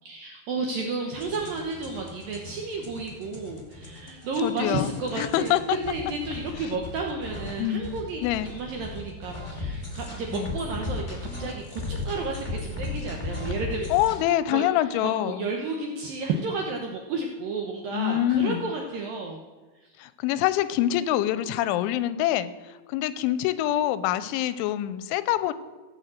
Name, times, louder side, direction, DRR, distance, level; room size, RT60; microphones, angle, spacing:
voice 1, 0.0-13.9 14.5-19.4 19.8-19.9, right 3 dB, 75° right, 1 dB, 2.1 m, -32 dB
sound 1, 1.2-14.2, left 2 dB, 35° left, 0.5 m, -36 dB
voice 2, 4.4-4.9 5.2-5.8 7.6-7.9 8.2-8.5 10.3-10.5 13.9-15.5 17.9-18.7 20.0-25.5, left 13 dB, 90° left, 14 dB, 3.0 m, -25 dB
16.0 x 6.3 x 7.6 m, 1.3 s
omnidirectional pair, 5.3 m